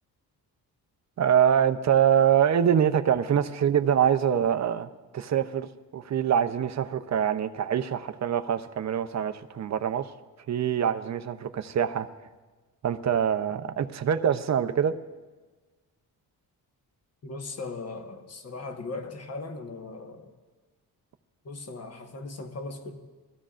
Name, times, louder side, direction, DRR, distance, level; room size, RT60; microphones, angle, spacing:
voice 1, 1.2-10.1 10.5-12.1 12.8-15.0, right 8 dB, 45° right, 10 dB, 0.7 m, -24 dB
voice 2, 17.2-20.3 21.4-22.9, left 3 dB, 40° left, 4 dB, 1.4 m, -38 dB
23.5 x 15.5 x 2.5 m, 1.3 s
cardioid pair, 140°, 38 cm